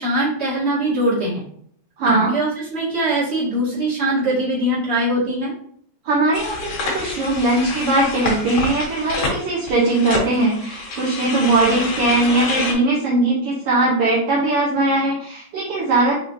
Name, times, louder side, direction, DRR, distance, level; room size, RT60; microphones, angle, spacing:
voice 1, 0.0-1.4 2.0-5.5, right 1 dB, 25° right, -8 dB, 1.7 m, -22 dB
voice 2, 2.0-2.3 6.0-16.1, right 2 dB, 75° right, -5 dB, 1.3 m, -19 dB
sound 1, 6.3-12.7, left 3 dB, 70° left, 2.1 m, -28 dB
5.4 x 3.6 x 2.7 m, 0.62 s
omnidirectional pair, 3.7 m